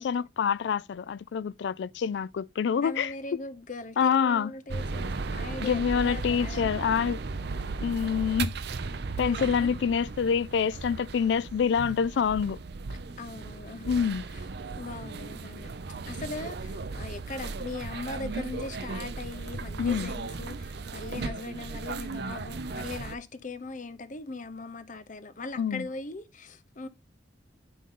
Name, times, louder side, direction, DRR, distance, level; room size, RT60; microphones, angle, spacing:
voice 1, 0.0-3.1 4.0-4.5 5.6-7.2 7.8-8.5 9.2-12.6 13.8-14.2 19.8-20.1 25.6-25.9, left 7 dB, 65° left, 0.3 m, -26 dB
voice 2, 2.8-6.7 9.0-9.7 13.2-13.9 14.3-14.4 14.8-15.7 16.1-26.9, left 3 dB, 45° left, 0.8 m, -40 dB
sound 1, 4.7-23.2, right 3 dB, 60° right, 0.6 m, -36 dB
10.0 x 3.8 x 3.7 m
head